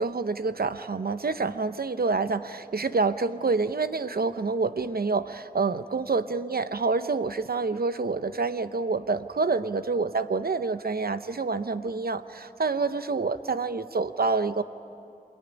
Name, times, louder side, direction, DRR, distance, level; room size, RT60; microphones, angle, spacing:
voice 1, 0.0-14.6, right 4 dB, 85° right, 11 dB, 0.8 m, -27 dB
28.0 x 21.0 x 9.8 m, 2.6 s
wide cardioid pair, 40°, 15 cm